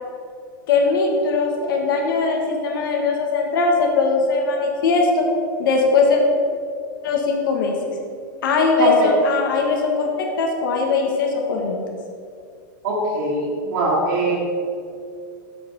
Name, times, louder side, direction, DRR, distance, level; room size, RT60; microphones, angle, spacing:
voice 1, 0.7-5.2 5.6-6.2 7.0-7.9 8.4-11.8, left 4 dB, 80° left, 1 dB, 1.4 m, -20 dB
voice 2, 8.8-9.1 12.8-14.4, right 2 dB, 75° right, -8 dB, 2.2 m, -21 dB
7.5 x 6.5 x 5.4 m, 2.3 s
supercardioid pair, 145°, 11 cm